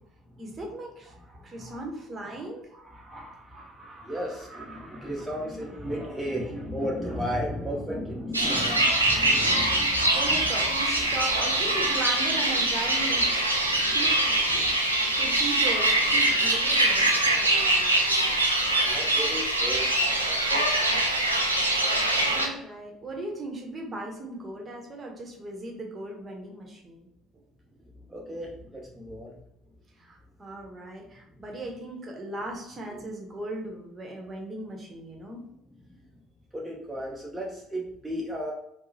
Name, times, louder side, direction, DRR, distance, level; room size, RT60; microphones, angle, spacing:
voice 1, 0.4-1.1 1.4-2.7 10.1-13.3 13.9-14.7 15.2-17.1 22.2-27.1 30.0-35.4, right 2 dB, 30° right, 1 dB, 0.9 m, -37 dB
voice 2, 1.3-1.8 2.2-2.4 2.9-10.4 13.8-14.0 14.5-14.8 18.9-20.1 20.5-21.0 21.6-21.7 28.1-29.3 36.5-38.5, equal, 5° right, -4 dB, 0.7 m, -35 dB
sound 1, 8.3-22.5, right 1 dB, 85° right, 0.4 m, -23 dB
4.7 x 2.0 x 2.6 m, 0.77 s
figure-of-eight pair, 55°, 0 cm